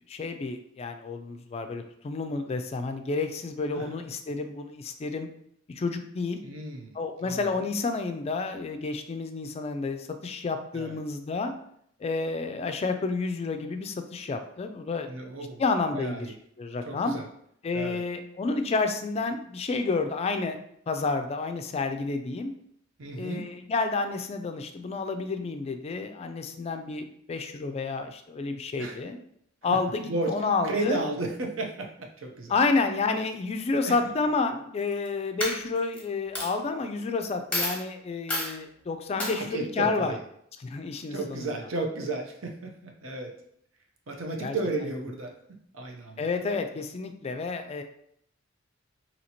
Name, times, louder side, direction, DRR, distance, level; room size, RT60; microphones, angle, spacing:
voice 1, 0.1-5.3 5.7-6.4 6.9-11.5 12.0-15.1 15.6-17.1 17.6-20.6 20.9-22.5 23.2-29.2 29.6-31.0 32.5-40.1 40.6-41.5 44.4-44.6 46.2-47.8, left 3 dB, 30° left, 7 dB, 0.3 m, -30 dB
voice 2, 6.4-7.0 7.2-7.5 10.7-11.0 15.1-15.6 15.9-16.3 16.9-17.3 17.7-18.0 23.0-23.4 28.8-29.0 29.7-29.8 30.0-30.3 30.6-32.5 33.9-34.0 39.3-40.2 41.1-43.3 44.1-45.3 45.7-46.2, right 2 dB, 85° right, 2 dB, 0.7 m, -33 dB
Coin (dropping), 34.8-35.1 35.4-36.0 36.3-36.5 37.2-37.3 37.5-37.8 38.3-38.5 39.2-39.3, left 1 dB, 10° left, 1.0 m, -29 dB
2.8 x 2.8 x 4.2 m, 0.70 s
head